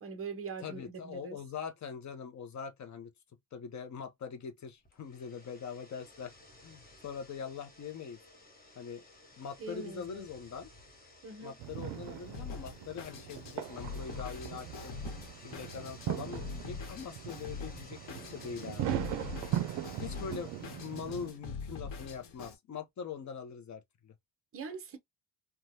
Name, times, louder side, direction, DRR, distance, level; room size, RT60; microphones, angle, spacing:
voice 1, 0.0-1.4 9.6-10.3 11.2-11.6 24.5-25.0, right 4 dB, 30° right, 0.8 m, -42 dB
voice 2, 0.6-3.1 3.5-6.4 6.6-8.2 8.7-9.0 9.4-10.7 11.4-15.0 15.4-18.9 20.0-24.1, left 6 dB, 35° left, 0.7 m, -43 dB
sound 1, 4.8-21.4, left 2 dB, 20° left, 1.0 m, -56 dB
sound 2, 11.6-21.3, right 11 dB, 60° right, 0.6 m, -39 dB
Drum kit, 12.3-22.5, left 5 dB, 70° left, 1.2 m, -44 dB
3.2 x 2.3 x 2.7 m
cardioid pair, 140°, 48 cm